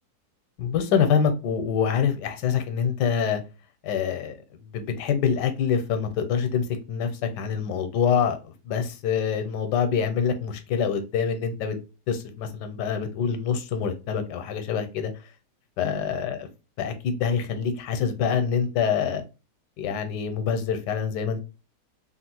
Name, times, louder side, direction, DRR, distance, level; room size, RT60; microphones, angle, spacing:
voice 1, 0.6-3.4 3.8-4.4 4.7-11.8 12.1-15.1 15.8-16.4 16.8-19.2 19.8-21.4, left 7 dB, 85° left, 1.2 m, -25 dB
3.3 x 2.3 x 2.8 m
omnidirectional pair, 1.8 m